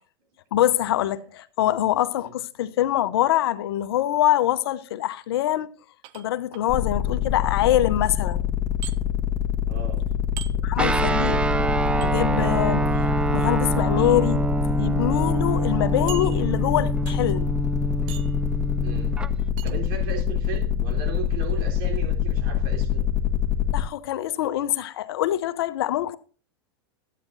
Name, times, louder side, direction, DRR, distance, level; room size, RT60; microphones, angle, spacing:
voice 1, 0.5-5.7 6.1-8.4 10.6-11.4 12.0-14.4 14.8-17.5 23.7-26.2, left 13 dB, 75° left, 0.7 m, -24 dB
sound 1, 6.0-6.7 8.8-9.0 10.4-10.5 12.0-12.1 13.5-13.7 14.5-14.6 14.9-15.0 16.1-16.7 17.1-17.4 18.1-18.4 19.6-19.8, right 13 dB, 45° right, 0.7 m, -39 dB
sound 2, 6.7-23.8, left 8 dB, 25° left, 1.4 m, -25 dB
voice 2, 9.7-10.0 10.5-11.0 18.8-19.1 19.6-23.0, right 5 dB, 65° right, 3.3 m, -36 dB
Guitar, 10.8-19.3, right 2 dB, 10° right, 0.4 m, -25 dB
12.5 x 9.2 x 2.6 m
hypercardioid pair, 120°, 13 cm